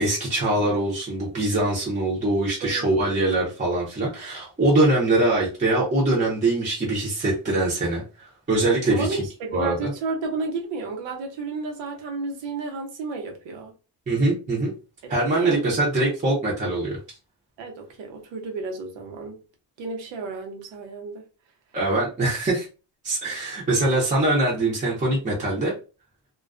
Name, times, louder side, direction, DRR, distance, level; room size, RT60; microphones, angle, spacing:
voice 1, 0.0-9.2 9.5-9.9 14.1-14.7 15.1-17.0 21.7-22.7 23.0-25.7, right 2 dB, 20° right, 0.7 m, -23 dB
voice 2, 8.9-13.7 15.0-15.9 17.6-19.4 19.8-21.2, right 3 dB, 90° right, 0.9 m, -32 dB
2.3 x 2.2 x 2.4 m
cardioid pair, 145°, 43 cm